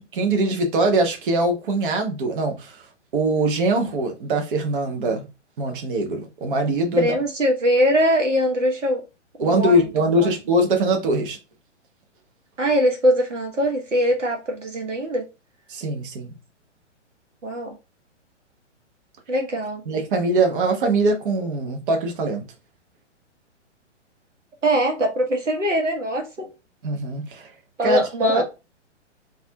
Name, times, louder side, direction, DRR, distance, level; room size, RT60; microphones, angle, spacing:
voice 1, 0.0-2.8 3.1-5.3 5.6-7.1 9.4-11.4 15.7-16.3 19.9-22.4 26.8-27.5 27.8-28.4, right 2 dB, 45° right, 0.9 m, -22 dB
voice 2, 6.9-9.0 9.4-10.3 12.6-15.3 17.4-17.8 19.3-19.8 24.6-26.5 27.8-28.4, equal, 80° right, 1.0 m, -22 dB
4.0 x 2.4 x 2.7 m
figure-of-eight pair, 120°, 37 cm